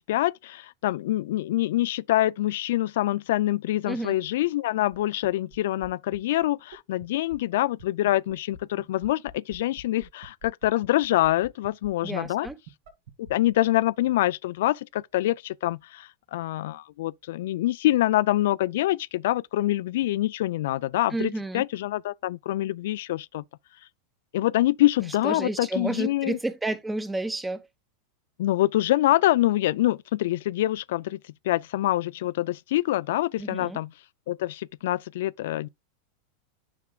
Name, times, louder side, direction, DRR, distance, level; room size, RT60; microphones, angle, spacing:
voice 1, 0.1-12.5 13.2-23.4 24.3-26.4 28.4-31.2 31.4-33.9 34.3-35.7, left 15 dB, 70° left, 0.3 m, -25 dB
sound 1, 4.9-5.0 5.2-5.6 5.8-5.9 6.1-6.2 6.4-6.5 6.7-6.8 7.0-7.1 7.3-13.5, right 4 dB, 70° right, 2.5 m, -44 dB
voice 2, 12.0-12.6 21.1-21.6 25.2-27.7 33.4-33.8, right 2 dB, 10° right, 1.0 m, -31 dB
9.5 x 6.0 x 2.3 m
hypercardioid pair, 105°, 0 cm